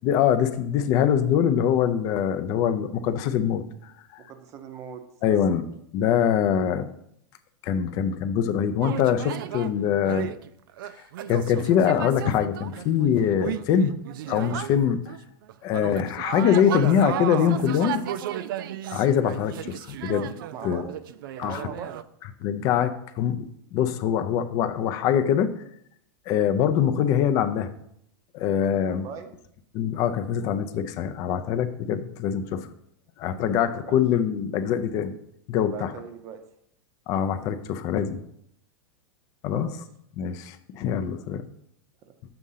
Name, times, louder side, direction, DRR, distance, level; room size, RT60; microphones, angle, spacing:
voice 1, 0.0-3.6 5.2-5.6 5.9-6.9 7.6-10.3 11.3-13.9 14.3-15.1 15.6-18.0 18.9-20.3 20.6-20.8 21.4-21.7 22.4-25.5 26.3-27.7 28.3-29.0 29.7-32.7 33.2-35.1 35.5-35.9 37.1-38.2 39.4-39.8 40.2-41.4, left 8 dB, 30° left, 11 dB, 0.4 m, -23 dB
voice 2, 4.2-5.5 20.5-22.1 28.9-29.3 33.4-34.0 35.6-36.4 39.5-39.8, right 7 dB, 25° right, 7 dB, 0.6 m, -41 dB
sound 1, 8.8-9.7 10.1-15.2 15.5-22.0, right 11 dB, 65° right, 0.4 m, -34 dB
6.7 x 3.7 x 5.6 m, 0.72 s
supercardioid pair, 170°, 12 cm